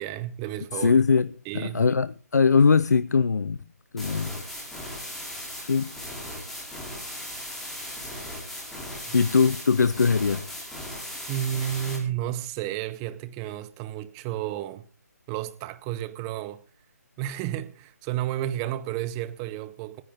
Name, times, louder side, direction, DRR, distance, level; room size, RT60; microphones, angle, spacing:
voice 1, 0.0-1.0 1.5-1.9 9.1-9.2 11.3-14.9 15.3-16.6 17.2-20.0, right 11 dB, 15° right, 0.7 m, -32 dB
voice 2, 0.7-3.6 3.9-4.4 4.8-4.9 5.6-5.9 8.8-10.4, left 5 dB, 80° left, 0.7 m, -22 dB
sound 1, 4.0-12.0, left 1 dB, 5° left, 2.8 m, -37 dB
26.0 x 10.5 x 3.6 m
hypercardioid pair, 170°, 9 cm